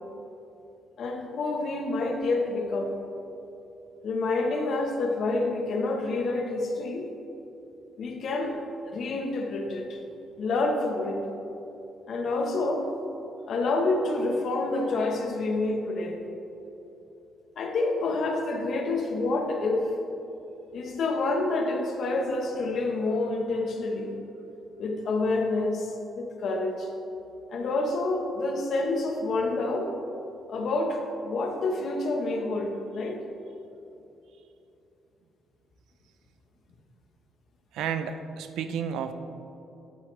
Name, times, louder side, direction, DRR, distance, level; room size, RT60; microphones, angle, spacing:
voice 1, 1.0-2.9 4.0-7.1 8.0-10.0 10.4-11.2 12.1-12.9 13.5-16.2 17.6-19.9 20.7-24.2 24.8-26.9 27.5-29.9 30.5-33.2, left 2 dB, 65° left, 3 dB, 1.3 m, -28 dB
voice 2, 37.7-39.1, right 7 dB, 85° right, 9 dB, 0.6 m, -31 dB
12.0 x 8.5 x 3.4 m, 3.0 s
cardioid pair, 90°, 0 cm